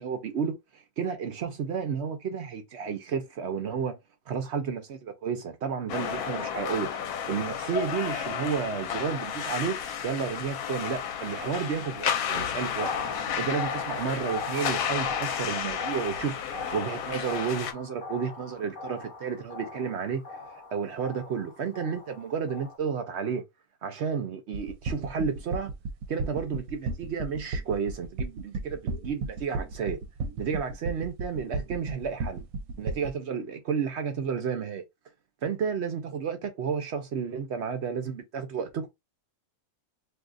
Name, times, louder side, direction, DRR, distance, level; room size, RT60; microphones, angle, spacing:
voice 1, 0.0-3.9 4.3-6.9 7.3-12.9 13.4-16.4 16.7-20.2 20.7-23.4 23.8-25.7 26.1-30.0 30.4-32.4 32.8-34.8 35.4-38.9, right 6 dB, 65° right, 0.7 m, -31 dB
sound 1, 5.9-17.7, left 8 dB, 75° left, 1.1 m, -32 dB
sound 2, 12.6-22.8, left 3 dB, 45° left, 0.8 m, -40 dB
sound 3, 24.5-33.1, right 3 dB, 80° right, 1.0 m, -33 dB
2.6 x 2.4 x 3.6 m
omnidirectional pair, 1.5 m